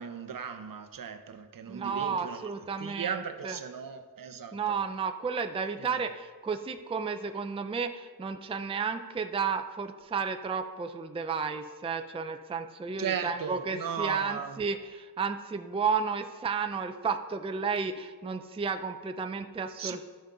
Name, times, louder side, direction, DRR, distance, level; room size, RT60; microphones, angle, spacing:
voice 1, 0.0-2.4 2.8-4.8 5.8-6.1 13.0-14.6 19.8-20.0, right 7 dB, 60° right, 8 dB, 0.7 m, -36 dB
voice 2, 1.7-3.6 4.5-20.0, right 5 dB, 15° right, 7 dB, 0.4 m, -32 dB
13.0 x 5.2 x 3.9 m, 1.5 s
wide cardioid pair, 100°, 38 cm